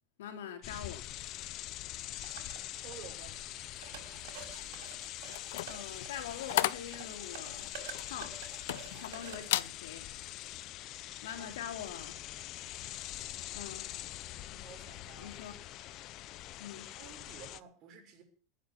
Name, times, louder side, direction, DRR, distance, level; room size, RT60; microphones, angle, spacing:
voice 1, 0.2-1.1 5.7-7.7 8.0-8.4 9.0-10.1 11.2-12.2 13.5-13.9 15.2-15.6 16.6-16.9, left 9 dB, 90° left, 3.4 m, -43 dB
sound 1, 0.6-17.6, left 14 dB, 30° left, 0.7 m, -44 dB
sound 2, 2.2-9.4, right 7 dB, 55° right, 5.5 m, -50 dB
voice 2, 2.8-3.6 11.4-11.5 14.4-15.4 16.9-18.2, right 8 dB, 30° right, 6.4 m, -52 dB
sound 3, 5.3-9.1 9.4-9.8 10.2-10.5, left 15 dB, 65° left, 0.8 m, -35 dB
20.0 x 9.1 x 7.4 m
supercardioid pair, 175°, 0 cm